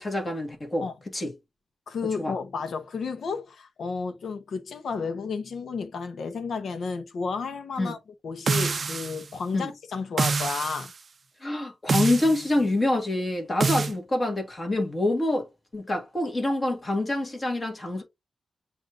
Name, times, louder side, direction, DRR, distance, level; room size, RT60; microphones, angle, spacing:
voice 1, 0.0-0.8 1.1-1.3 2.2-2.3 7.8-7.9 9.5-9.7 11.4-15.5 15.7-18.0, left 1 dB, 30° left, 1.6 m, -26 dB
voice 2, 1.9-8.0 8.2-10.9, left 5 dB, 75° left, 0.9 m, -32 dB
sound 1, 8.5-9.3 10.2-10.9 11.9-12.5 13.6-13.9, right 4 dB, 45° right, 0.4 m, -26 dB
7.7 x 2.7 x 2.5 m
wide cardioid pair, 125°, 0 cm